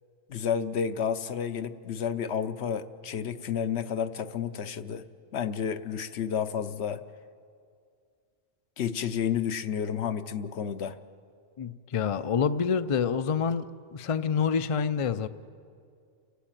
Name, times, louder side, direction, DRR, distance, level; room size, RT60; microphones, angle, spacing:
voice 1, 0.3-5.1 5.3-7.0 8.8-11.0, left 8 dB, 70° left, 11 dB, 1.0 m, -31 dB
voice 2, 11.6-15.3, left 6 dB, 40° left, 12 dB, 0.5 m, -27 dB
30.0 x 11.5 x 9.0 m, 2.3 s
omnidirectional pair, 1.2 m